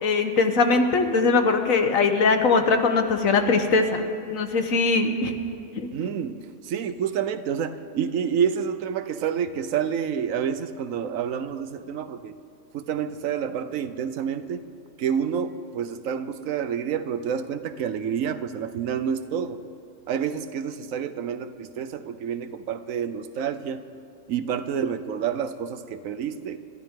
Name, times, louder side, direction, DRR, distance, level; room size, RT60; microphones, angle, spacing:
voice 1, 0.0-5.3 5.8-5.9, left 4 dB, 75° left, 6 dB, 1.5 m, -21 dB
voice 2, 5.9-12.3 12.7-14.7 15.0-19.6 20.1-23.8 24.3-26.6, right 8 dB, 75° right, 12 dB, 1.1 m, -28 dB
27.5 x 13.5 x 3.7 m, 2.5 s
omnidirectional pair, 1.4 m